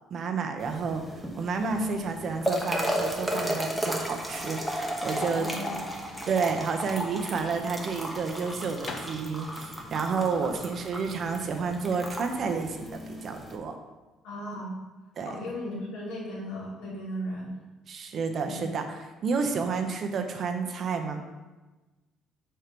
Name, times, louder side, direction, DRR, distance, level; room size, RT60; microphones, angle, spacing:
voice 1, 0.1-1.0 1.4-5.5 6.3-13.7 15.2-15.4 17.9-21.2, right 5 dB, 40° right, 4 dB, 0.8 m, -30 dB
sound 1, 0.6-13.6, equal, 5° left, 0.9 m, -34 dB
voice 2, 5.3-6.1 14.2-14.7 15.2-17.5 18.4-18.6, left 1 dB, 85° left, -5 dB, 2.5 m, -36 dB
sound 2, 8.8-12.6, left 3 dB, 35° left, 0.7 m, -46 dB
6.4 x 4.4 x 5.2 m, 1.2 s
cardioid pair, 140°, 0 cm